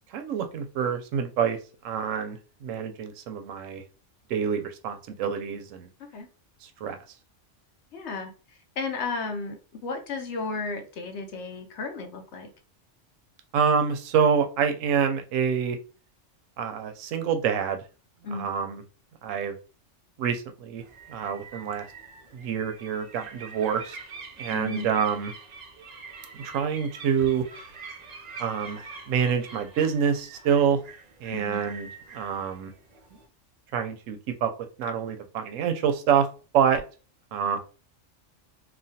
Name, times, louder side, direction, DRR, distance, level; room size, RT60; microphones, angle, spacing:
voice 1, 0.1-1.6 1.8-3.8 4.3-5.9 6.6-7.0 13.5-15.8 16.6-17.8 18.3-18.8 19.2-19.5 20.2-20.8 21.1-21.9 22.3-24.0 24.4-25.3 26.4-27.4 28.4-30.8 31.2-31.9 32.1-32.7 33.7-34.5 34.8-36.3 36.5-36.8 37.3-37.6, right 7 dB, 85° right, 6 dB, 0.9 m, -26 dB
voice 2, 7.9-12.5 18.2-18.5 24.5-24.9 31.3-31.6, left 3 dB, 65° left, 5 dB, 0.9 m, -34 dB
sound 1, 20.8-33.3, right 4 dB, 60° right, 0.4 m, -45 dB
3.1 x 2.2 x 2.7 m, 0.35 s
omnidirectional pair, 1.3 m